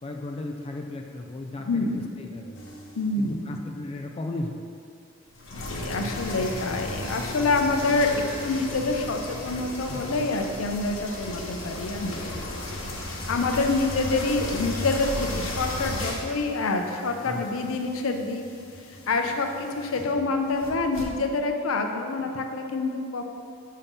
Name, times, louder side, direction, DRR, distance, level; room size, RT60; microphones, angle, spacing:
voice 1, 0.0-2.6 3.2-4.7 6.4-6.6 17.2-17.5, left 2 dB, 30° left, 3 dB, 0.3 m, -35 dB
voice 2, 1.7-2.1 3.0-3.6 5.6-12.6 13.3-18.4 18.9-23.3, left 3 dB, 90° left, 4 dB, 0.5 m, -27 dB
sound 1, 2.6-3.1 5.3-21.0, left 1 dB, 70° left, 0.8 m, -35 dB
7.0 x 2.7 x 5.3 m, 2.4 s
head